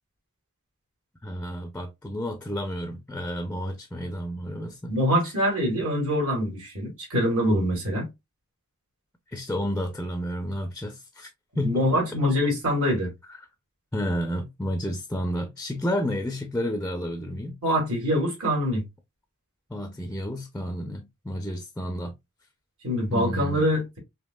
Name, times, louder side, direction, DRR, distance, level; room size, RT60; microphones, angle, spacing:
voice 1, 1.2-5.0 9.3-11.3 11.5-12.0 13.9-17.6 19.7-22.1 23.1-23.7, equal, 10° left, 0.6 m, -31 dB
voice 2, 4.9-8.1 11.6-13.1 17.6-18.8 22.8-24.0, equal, 75° right, 2.5 m, -24 dB
5.3 x 2.9 x 2.2 m
head